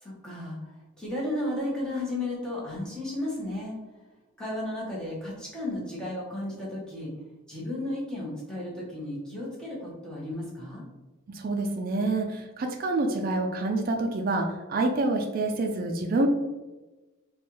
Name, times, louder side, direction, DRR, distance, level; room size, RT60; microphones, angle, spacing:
voice 1, 0.0-3.8 4.4-7.1 7.5-10.8, left 1 dB, 5° left, -6 dB, 1.0 m, -34 dB
voice 2, 11.3-16.3, right 2 dB, 45° right, 4 dB, 0.4 m, -27 dB
4.3 x 2.3 x 3.0 m, 1.1 s
head